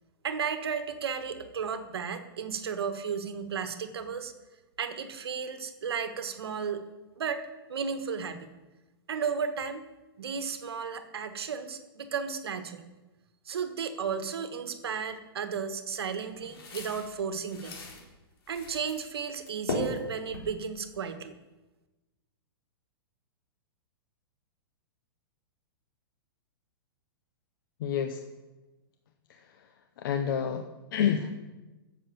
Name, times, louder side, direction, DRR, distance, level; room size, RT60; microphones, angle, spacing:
voice 1, 0.2-4.3 4.8-6.8 7.2-8.5 9.1-9.9 10.2-12.9 13.5-17.8 18.5-21.3, right 6 dB, 90° right, 8 dB, 1.4 m, -34 dB
sound 1, 15.9-18.0 18.4-19.1 19.4-20.9, left 1 dB, 85° left, 4.0 m, -37 dB
voice 2, 27.8-28.2 29.3-31.3, left 8 dB, 60° left, 7 dB, 0.9 m, -30 dB
10.5 x 7.5 x 7.1 m, 1.1 s
hypercardioid pair, 140°, 13 cm